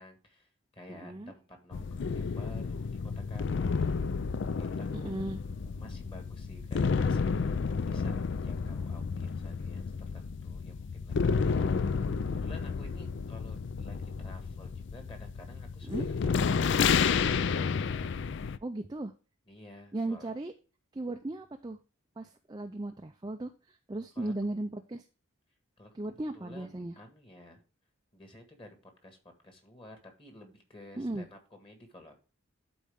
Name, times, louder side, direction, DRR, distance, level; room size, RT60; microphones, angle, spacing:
voice 1, 0.0-3.8 4.4-5.1 5.8-11.7 12.2-16.7 19.5-20.3 24.1-24.3 25.8-27.6 28.1-29.2 29.4-32.2, left 1 dB, 25° left, 4 dB, 1.6 m, -52 dB
voice 2, 0.9-1.3 4.9-5.4 15.8-16.1 18.6-19.1 19.9-20.5 20.9-21.8 22.2-25.0 25.9-26.9 31.0-31.3, right 2 dB, 20° right, 5 dB, 0.4 m, -36 dB
sound 1, 1.7-18.6, left 5 dB, 55° left, 0.4 m, -31 dB
12.0 x 4.3 x 3.5 m, 0.35 s
head